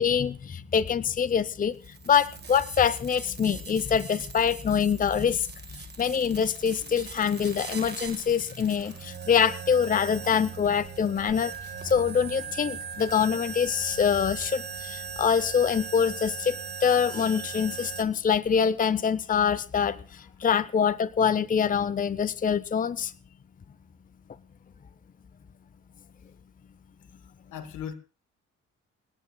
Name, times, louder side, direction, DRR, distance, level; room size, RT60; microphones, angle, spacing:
voice 1, 0.0-11.5 11.8-16.6 16.8-23.1, left 7 dB, 30° left, 16 dB, 0.6 m, -25 dB
sound 1, 1.7-18.0, right 6 dB, 35° right, 1.6 m, -40 dB
voice 2, 27.5-27.9, left 8 dB, 80° left, 10 dB, 1.5 m, -39 dB
28.5 x 10.0 x 2.3 m, 0.34 s
cardioid pair, 90°, 30 cm